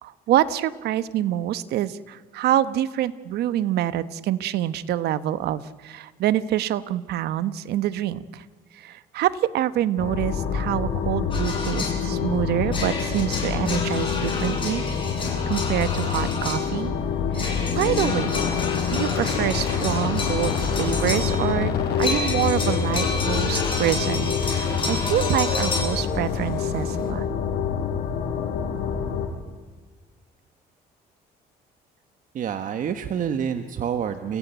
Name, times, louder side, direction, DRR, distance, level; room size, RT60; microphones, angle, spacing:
voice 1, 0.0-8.4 8.7-14.8 15.5-17.0 17.3-18.4 18.9-27.3, right 12 dB, 75° right, 15 dB, 1.0 m, -26 dB
sound 1, 10.0-29.3, left 6 dB, 70° left, 5.4 m, -26 dB
sound 2, 11.3-12.0 12.7-16.8 17.3-21.5 22.0-25.8, left 3 dB, 30° left, 7.9 m, -31 dB
sound 3, 22.0-27.1, left 4 dB, 55° left, 7.8 m, -36 dB
voice 2, 32.3-34.4, right 8 dB, 50° right, 8 dB, 1.3 m, -27 dB
28.5 x 16.0 x 9.3 m, 1.4 s
cardioid pair, 110°, 17 cm